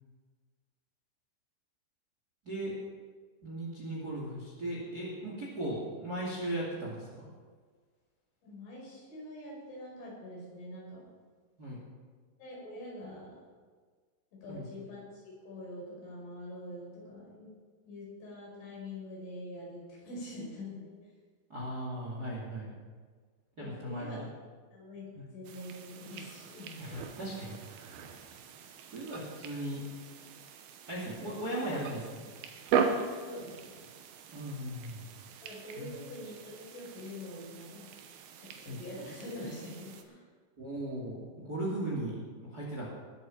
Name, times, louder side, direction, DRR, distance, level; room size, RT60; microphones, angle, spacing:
voice 1, 3.4-7.3 11.6-11.8 14.5-14.7 21.5-22.7 23.6-24.3 25.2-25.3 26.8-27.5 28.9-29.8 30.9-32.2 34.3-35.0 35.8-35.9 38.7-38.8 40.6-42.9, right 1 dB, 30° right, -3 dB, 2.0 m, -37 dB
voice 2, 8.4-11.1 12.4-13.4 14.4-17.5 17.9-20.9 23.6-24.3 24.7-25.0 25.3-27.1 33.3-33.8 35.4-37.9 38.4-40.3, left 1 dB, 80° left, -4 dB, 7.5 m, -45 dB
sound 1, 25.4-40.0, right 6 dB, 70° right, 2.4 m, -39 dB
20.0 x 8.3 x 5.8 m, 1.5 s
omnidirectional pair, 5.5 m